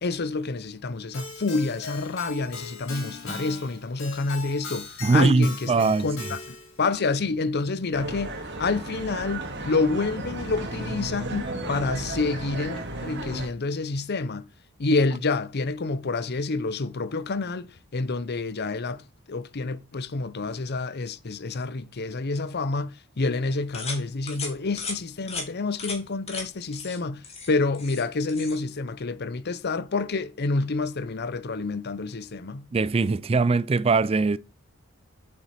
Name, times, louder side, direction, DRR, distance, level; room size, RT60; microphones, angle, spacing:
voice 1, 0.0-14.5 14.8-19.0 19.3-32.7, left 3 dB, 50° left, 0.7 m, -28 dB
Keyboard (musical), 1.1-6.8, left 4 dB, 75° left, 4.8 m, -39 dB
voice 2, 5.0-6.1 32.7-34.4, right 3 dB, 30° right, 0.4 m, -21 dB
sound 1, 7.9-13.5, right 2 dB, 60° right, 2.0 m, -34 dB
sound 2, 23.7-24.0 24.3-24.5 24.8-25.0 25.3-25.5 25.8-26.0 26.3-26.4 26.7-27.0 27.2-28.0 28.3-28.6, left 4 dB, 30° left, 2.6 m, -35 dB
7.8 x 7.1 x 4.3 m
head